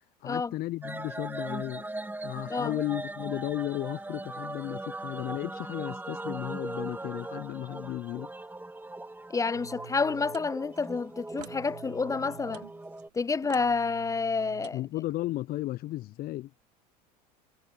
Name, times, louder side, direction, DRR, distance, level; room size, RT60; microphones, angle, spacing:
voice 1, 0.2-1.8 2.2-8.3 14.7-16.5, left 16 dB, 45° left, 0.9 m, -34 dB
sound 1, 0.8-13.1, right 2 dB, 10° right, 3.4 m, -39 dB
voice 2, 9.3-12.6 13.1-14.8, left 4 dB, 15° left, 0.5 m, -29 dB
sound 2, 9.5-15.4, right 13 dB, 75° right, 2.2 m, -49 dB
hypercardioid pair, 75°, 21 cm